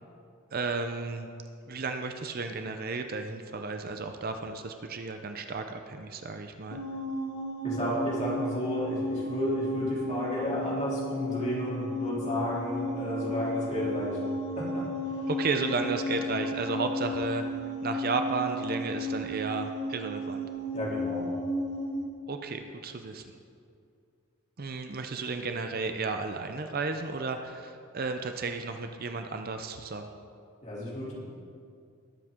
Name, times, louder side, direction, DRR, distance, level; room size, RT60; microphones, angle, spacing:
voice 1, 0.5-1.3 1.7-6.8 15.3-20.5 22.3-23.3 24.6-30.1, right 4 dB, 45° right, 6 dB, 0.6 m, -33 dB
sound 1, 6.7-22.1, left 1 dB, 50° left, 1.5 m, -34 dB
voice 2, 7.6-14.2 14.5-15.2 20.7-21.3 30.6-31.2, left 1 dB, 30° left, -6 dB, 3.0 m, -32 dB
20.5 x 7.6 x 3.7 m, 2.4 s
head